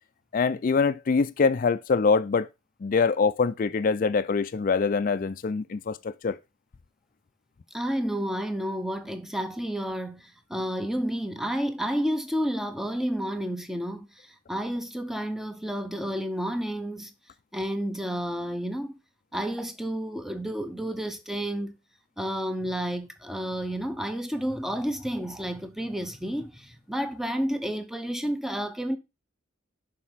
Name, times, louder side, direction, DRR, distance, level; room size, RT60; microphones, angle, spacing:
voice 1, 0.3-2.5 2.8-6.4, left 5 dB, 45° left, 0.4 m, -24 dB
voice 2, 7.7-17.1 17.5-19.0 19.3-21.7 22.2-29.0, equal, ahead, 0.6 m, -31 dB
6.4 x 4.4 x 5.6 m
head